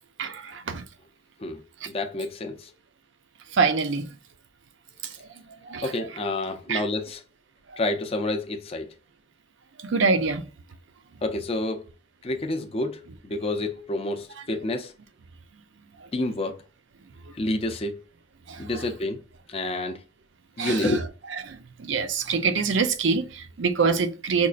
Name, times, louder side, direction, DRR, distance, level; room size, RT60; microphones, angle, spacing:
voice 1, 0.2-0.8 3.5-4.1 5.7-5.9 6.7-6.8 9.8-10.4 18.5-18.6 20.6-20.9 21.5-24.5, right 4 dB, 70° right, 0.5 m, -25 dB
voice 2, 1.4-2.7 5.8-7.2 7.8-8.9 11.2-11.9 12.2-14.9 16.1-16.6 17.3-18.0 18.6-19.2 19.5-20.0 20.6-21.0, left 2 dB, 30° left, 0.5 m, -29 dB
5.2 x 2.4 x 2.3 m
head